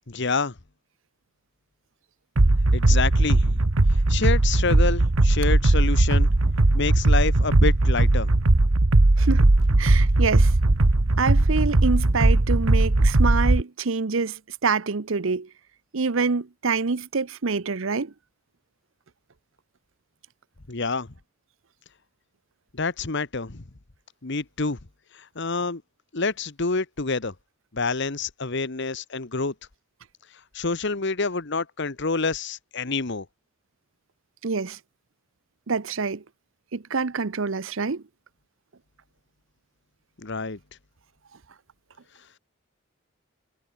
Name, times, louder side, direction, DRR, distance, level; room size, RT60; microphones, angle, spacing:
voice 1, 0.1-0.6 2.7-3.6 3.9-6.3 6.7-8.3 20.7-21.1 22.7-23.6 24.2-24.8 25.1-25.8 26.1-27.3 27.7-29.5 30.5-33.3 40.2-40.6, left 4 dB, 55° left, 1.3 m, -27 dB
sound 1, 2.4-13.6, right 2 dB, 80° right, 1.3 m, -19 dB
voice 2, 9.8-10.5 11.2-15.5 15.9-18.1 34.4-34.8 35.7-36.2 36.7-38.0, right 4 dB, 65° right, 0.8 m, -26 dB
head